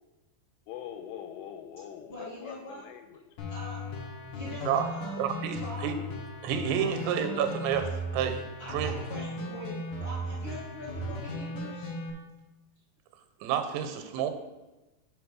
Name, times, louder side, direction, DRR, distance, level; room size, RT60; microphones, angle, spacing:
voice 1, 0.7-3.2, left 9 dB, 85° left, 7 dB, 2.8 m, -43 dB
voice 2, 2.1-2.9 3.5-3.8 4.3-5.2 5.6-5.9 6.9-7.3 8.6-11.9, equal, 50° left, -8 dB, 1.5 m, -43 dB
sound 1, 3.4-12.1, equal, 70° left, 1.9 m, -36 dB
voice 3, 5.2-5.9 6.4-8.4 8.7-8.9 13.4-14.3, right 9 dB, 85° right, 7 dB, 2.9 m, -29 dB
6.1 x 5.3 x 6.0 m, 1.1 s
omnidirectional pair, 4.9 m